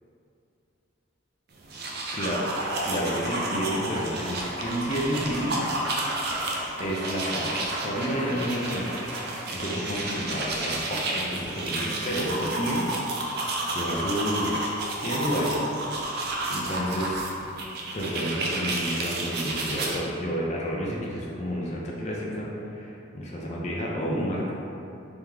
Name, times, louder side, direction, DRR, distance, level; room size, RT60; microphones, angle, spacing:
sound 1, 1.6-20.0, right 2 dB, 50° right, 0.4 m, -31 dB
voice 1, 2.1-2.4 2.8-5.6 6.8-8.9 9.5-12.9 13.7-14.5 15.0-15.6 16.5-17.2 17.9-22.5 22.7-24.5, equal, 35° left, -4 dB, 0.5 m, -30 dB
sound 2, 2.6-3.5 3.9-9.8 10.2-10.5 10.9-11.0, right 1 dB, 65° right, 0.8 m, -37 dB
3.4 x 2.9 x 3.5 m, 2.8 s
head